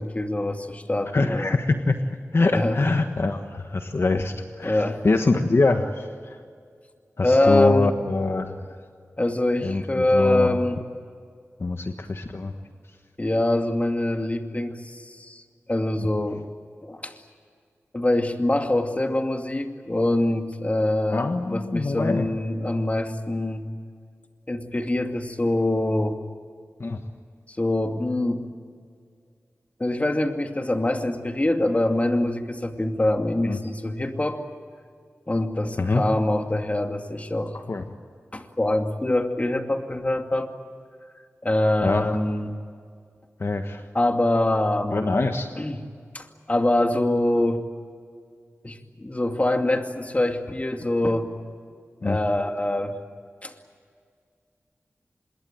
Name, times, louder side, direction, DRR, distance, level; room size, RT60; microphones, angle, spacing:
voice 1, 0.0-1.6 2.5-2.8 4.1-4.2 4.6-5.0 7.2-7.9 9.2-10.8 13.2-15.4 15.7-16.5 16.8-17.2 17.9-23.7 24.5-26.2 27.6-28.4 29.8-34.4 35.3-37.6 38.3-40.5 41.4-42.6 43.9-45.3 45.6-45.8 46.1-47.6 48.6-51.3 52.0-53.0 53.4-53.5, left 1 dB, 30° left, 5 dB, 2.3 m, -24 dB
voice 2, 1.1-1.9 2.3-6.4 7.2-8.6 9.6-10.5 11.6-12.5 16.0-16.1 21.1-22.3 26.8-27.0 33.5-33.6 35.8-36.0 37.5-37.8 41.8-42.0 43.4-43.8 44.9-45.5 52.0-52.2, left 3 dB, 55° left, 6 dB, 1.4 m, -24 dB
26.0 x 22.0 x 8.9 m, 2.1 s
wide cardioid pair, 60°, 5 cm